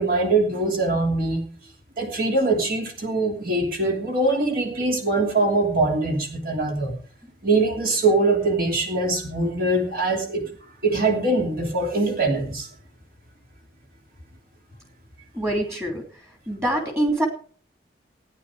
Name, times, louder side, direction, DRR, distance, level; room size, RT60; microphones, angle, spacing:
voice 1, 0.0-1.4 2.0-7.0 7.4-10.5 10.8-12.7, right 2 dB, 50° right, 1 dB, 3.0 m, -22 dB
voice 2, 15.3-16.0 16.5-17.3, right 1 dB, 15° right, 2 dB, 3.1 m, -24 dB
17.0 x 9.8 x 4.9 m, 0.43 s
head